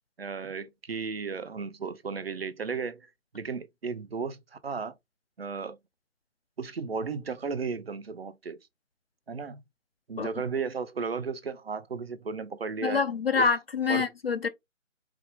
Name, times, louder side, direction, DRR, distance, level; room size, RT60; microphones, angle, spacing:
voice 1, 0.2-3.1 3.3-4.9 5.4-5.8 6.6-8.6 9.3-9.6 10.1-13.0 13.3-13.4 13.9-14.1, right 5 dB, 50° right, 0.6 m, -34 dB
voice 2, 12.8-14.5, left 5 dB, 50° left, 0.6 m, -26 dB
4.6 x 2.0 x 3.6 m
figure-of-eight pair, 150°, 40 cm